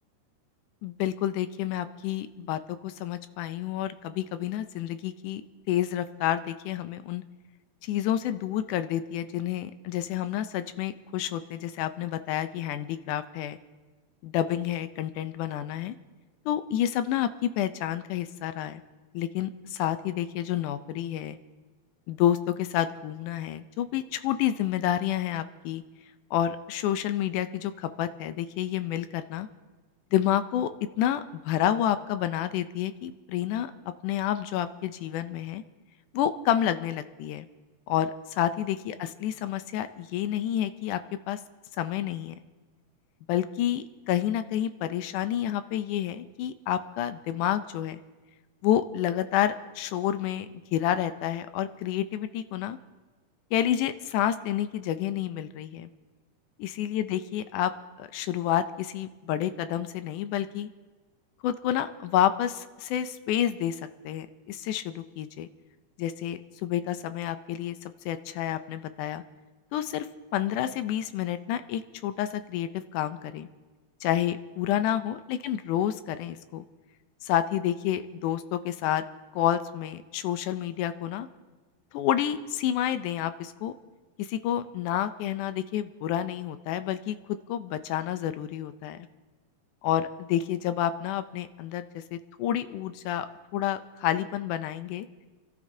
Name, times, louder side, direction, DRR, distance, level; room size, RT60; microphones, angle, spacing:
voice 1, 0.8-5.4 5.7-7.2 7.8-13.6 14.2-16.0 16.5-18.8 19.1-21.4 22.1-25.8 26.3-29.5 30.1-30.7 31.0-33.7 34.0-35.6 36.1-37.5 37.9-41.0 41.3-41.4 41.8-42.4 43.3-48.0 48.6-52.8 53.5-55.9 56.6-57.7 58.0-60.7 61.4-65.5 66.0-69.2 69.7-70.1 70.3-73.5 74.0-76.7 77.2-79.0 79.3-81.3 81.9-83.7 84.2-89.1 89.8-93.3 93.5-95.1, left 11 dB, 85° left, 11 dB, 2.1 m, -29 dB
29.0 x 12.5 x 2.7 m, 1.3 s
omnidirectional pair, 3.6 m